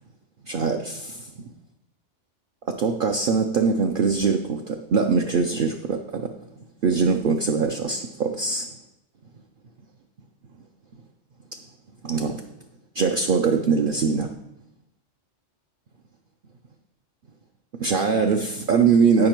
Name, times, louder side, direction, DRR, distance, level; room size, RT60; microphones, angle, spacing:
voice 1, 0.4-1.3 2.7-6.3 6.8-8.7 12.0-12.4 12.9-14.3 17.8-19.3, right 5 dB, 60° right, 3 dB, 0.6 m, -22 dB
8.7 x 5.2 x 4.4 m, 0.82 s
omnidirectional pair, 1.3 m